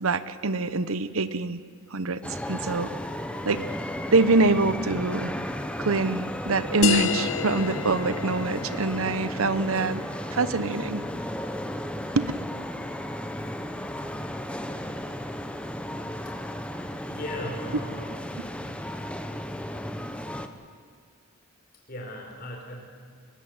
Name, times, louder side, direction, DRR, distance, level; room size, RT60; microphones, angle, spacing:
voice 1, 0.0-1.6 1.9-2.2 2.5-2.9 3.4-3.6 4.1-5.3 5.8-10.0 10.3-11.0 12.1-12.3, right 3 dB, 80° right, 14 dB, 0.9 m, -25 dB
sound 1, 2.2-20.5, left 1 dB, 5° left, 0.9 m, -34 dB
sound 2, 6.8-11.9, left 7 dB, 65° left, 0.9 m, -31 dB
voice 2, 17.1-18.2 21.9-22.8, left 1 dB, 45° left, 0 dB, 4.5 m, -37 dB
21.5 x 19.0 x 8.0 m, 2.1 s
head